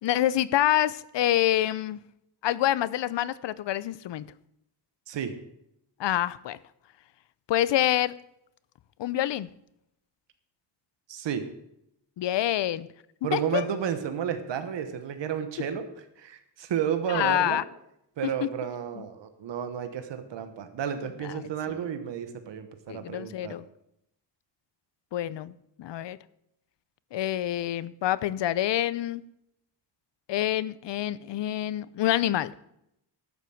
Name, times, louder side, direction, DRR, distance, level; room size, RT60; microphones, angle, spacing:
voice 1, 0.0-2.0 2.4-4.3 6.0-6.6 7.5-8.1 9.0-9.5 12.2-12.9 13.3-13.6 17.1-17.6 18.4-18.5 19.0-19.1 21.3-21.8 22.9-23.6 25.1-25.5 25.8-26.2 27.1-29.2 30.3-32.5, left 12 dB, 80° left, 18 dB, 0.7 m, -27 dB
voice 2, 11.1-11.4 13.2-15.9 16.2-17.6 18.2-23.5, right 8 dB, 90° right, 9 dB, 1.3 m, -32 dB
12.0 x 7.4 x 7.7 m, 0.79 s
wide cardioid pair, 120°, 42 cm